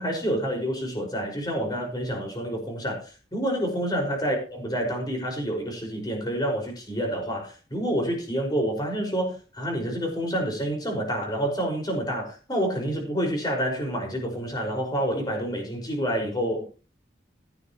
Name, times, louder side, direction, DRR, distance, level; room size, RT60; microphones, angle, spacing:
voice 1, 0.0-3.0 3.3-16.6, equal, 20° left, 1 dB, 5.8 m, -28 dB
16.5 x 10.5 x 3.2 m, 0.35 s
head